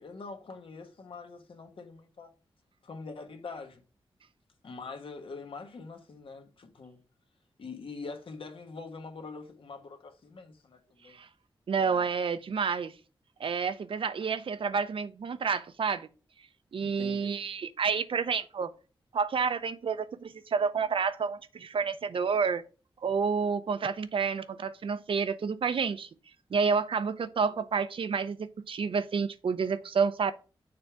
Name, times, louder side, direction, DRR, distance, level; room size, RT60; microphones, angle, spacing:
voice 1, 0.0-2.3 2.8-3.8 4.6-7.0 7.6-11.2 11.8-12.1 16.8-17.4, left 4 dB, 70° left, 1.2 m, -44 dB
voice 2, 11.7-12.9 13.4-16.1 16.7-18.7 19.1-22.6 23.0-26.1 26.5-30.3, right 5 dB, 70° right, 0.6 m, -29 dB
6.7 x 3.5 x 5.6 m
wide cardioid pair, 80°, 9 cm